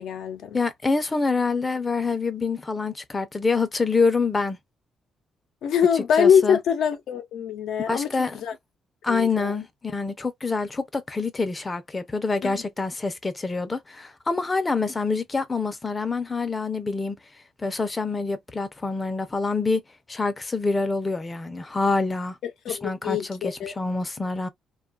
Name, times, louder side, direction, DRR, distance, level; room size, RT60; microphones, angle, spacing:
voice 1, 0.0-0.6 5.6-8.5 9.1-9.6 12.4-12.6 22.4-23.7, left 7 dB, 75° left, 0.6 m, -24 dB
voice 2, 0.5-4.6 6.2-6.6 7.9-8.4 9.0-17.2 17.6-19.8 20.1-22.4 22.7-24.5, left 4 dB, 25° left, 0.6 m, -26 dB
2.5 x 2.4 x 2.4 m
cardioid pair, 90°, 0 cm